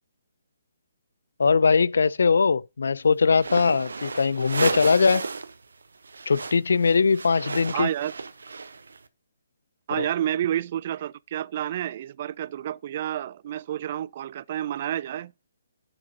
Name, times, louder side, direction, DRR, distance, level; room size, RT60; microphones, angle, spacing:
voice 1, 1.4-5.3 6.3-7.9 10.0-10.1, left 5 dB, 75° left, 0.4 m, -21 dB
sound 1, 3.3-5.6 5.8-9.0, right 4 dB, 80° right, 0.9 m, -33 dB
voice 2, 7.7-8.1 9.9-15.5, right 11 dB, 45° right, 0.4 m, -29 dB
10.5 x 7.6 x 2.8 m
hypercardioid pair, 145°, 0 cm